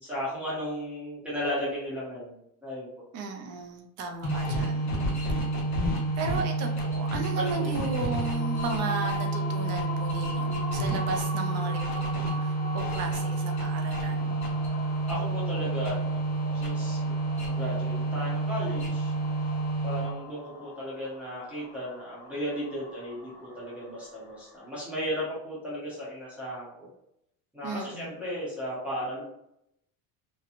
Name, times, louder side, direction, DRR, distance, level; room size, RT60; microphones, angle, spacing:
voice 1, 0.0-2.9 7.4-7.7 15.1-19.1 19.8-26.9 27.5-29.2, equal, 5° right, -9 dB, 0.9 m, -35 dB
voice 2, 3.1-4.9 6.2-14.3 27.6-28.2, right 4 dB, 45° right, 3 dB, 0.5 m, -35 dB
sound 1, 4.2-20.4, right 2 dB, 50° left, 1.0 m, -29 dB
sound 2, 7.4-24.7, left 3 dB, 25° left, 0.6 m, -42 dB
3.0 x 2.2 x 2.5 m, 0.80 s
cardioid pair, 155°, 37 cm